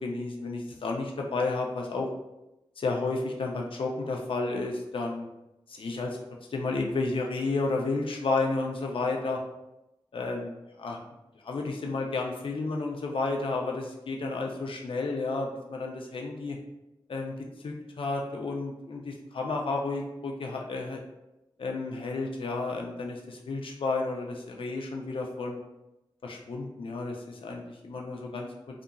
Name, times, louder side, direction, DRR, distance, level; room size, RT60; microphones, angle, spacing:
voice 1, 0.0-2.1 2.8-5.3 5.7-6.2 6.5-9.4 10.1-11.0 11.4-16.6 17.1-17.3 17.6-21.0 21.6-25.6 26.2-28.5, left 3 dB, 75° left, 1 dB, 0.4 m, -32 dB
2.7 x 2.5 x 2.2 m, 0.92 s
wide cardioid pair, 70°, 9 cm